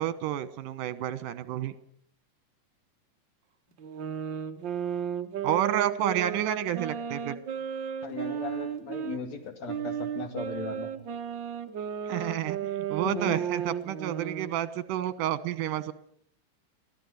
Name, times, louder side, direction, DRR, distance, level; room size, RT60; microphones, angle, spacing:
voice 1, 0.0-1.7 5.4-7.3 12.1-12.6 12.9-15.9, right 11 dB, 80° right, 15 dB, 2.7 m, -30 dB
sound 1, 3.8-9.2 9.7-14.6, right 8 dB, 60° right, 1.2 m, -34 dB
voice 2, 8.0-10.9 13.0-13.4, left 6 dB, 55° left, 6 dB, 3.8 m, -37 dB
23.5 x 15.5 x 8.1 m, 0.62 s
omnidirectional pair, 3.8 m